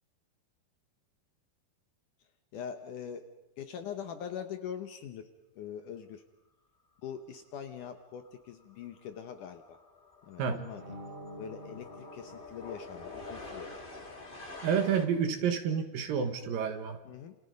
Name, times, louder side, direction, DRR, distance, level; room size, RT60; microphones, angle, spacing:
voice 1, 2.5-3.3 3.6-5.3 5.6-6.2 7.0-9.8 10.2-10.8 11.4-14.1 17.1-17.4, left 8 dB, 70° left, 7 dB, 2.1 m, -42 dB
sound 1, 8.3-8.5 8.7-15.0, left 2 dB, 15° left, 2.0 m, -47 dB
sound 2, 10.7-13.4, equal, 40° right, 2.5 m, -48 dB
voice 2, 14.6-17.0, right 7 dB, 65° right, 8 dB, 3.1 m, -29 dB
28.5 x 28.5 x 5.3 m, 0.99 s
omnidirectional pair, 4.6 m